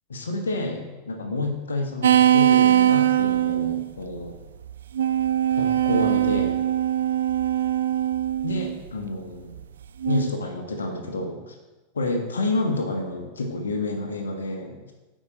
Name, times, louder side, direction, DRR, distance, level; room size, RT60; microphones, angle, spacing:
voice 1, 0.1-4.4 5.6-6.6 8.4-9.6 10.0-11.5 11.9-14.9, left 2 dB, 70° left, 3 dB, 1.2 m, -29 dB
sound 1, 2.0-3.9 4.7-8.8 10.0-10.3, right 11 dB, 65° right, 0.3 m, -21 dB
8.6 x 5.1 x 5.0 m, 1.1 s
figure-of-eight pair, 90°, 0 cm